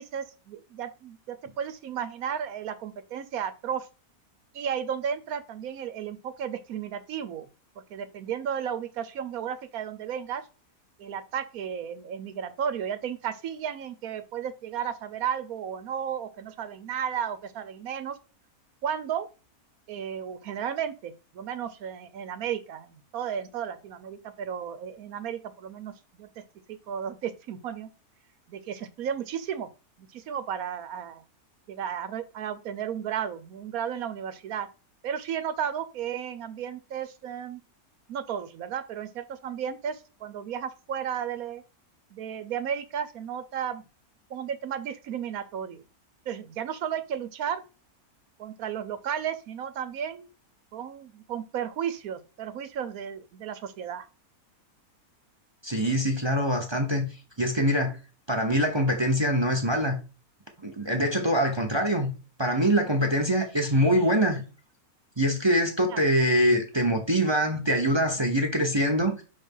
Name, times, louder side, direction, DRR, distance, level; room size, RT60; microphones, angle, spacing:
voice 1, 0.0-3.9 4.5-7.5 7.9-10.4 11.0-18.2 18.8-19.3 19.9-26.4 26.7-27.9 28.5-29.7 30.0-31.2 31.7-34.7 35.0-37.6 38.1-41.6 42.1-43.8 44.3-45.8 46.3-47.6 48.4-50.3 50.7-54.1 65.9-66.1, right 8 dB, 75° right, 1.2 m, -34 dB
voice 2, 55.6-57.1 57.4-58.0 58.3-60.0 60.6-62.1 62.4-64.4 65.2-69.2, equal, 20° right, 0.9 m, -24 dB
5.6 x 3.7 x 5.5 m
omnidirectional pair, 1.6 m